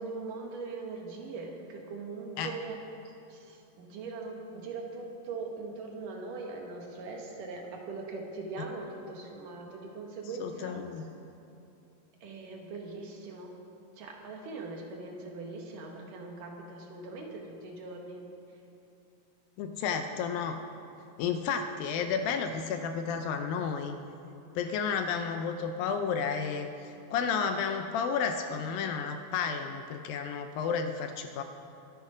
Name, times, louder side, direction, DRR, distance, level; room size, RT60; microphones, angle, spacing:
voice 1, 0.0-2.8 3.3-11.1 12.2-13.5 14.0-18.2, right 3 dB, 65° right, 1 dB, 2.8 m, -41 dB
voice 2, 10.4-11.0 19.6-20.6 21.2-24.0 24.6-31.4, left 6 dB, 80° left, 7 dB, 2.2 m, -32 dB
22.0 x 8.2 x 5.0 m, 2.8 s
omnidirectional pair, 4.5 m